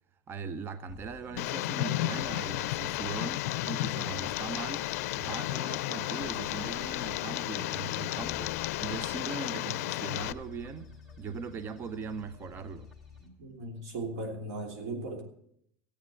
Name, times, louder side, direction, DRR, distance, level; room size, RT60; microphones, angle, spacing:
voice 1, 0.3-4.9 5.2-12.9, right 5 dB, 30° right, 0.6 m, -40 dB
sound 1, 0.9-13.3, left 3 dB, 5° right, 2.6 m, -50 dB
Tick, 1.4-10.3, left 17 dB, 85° left, 0.4 m, -33 dB
voice 2, 13.4-15.2, right 2 dB, 85° right, 3.0 m, -37 dB
14.5 x 8.6 x 7.6 m
supercardioid pair, 140°, 8 cm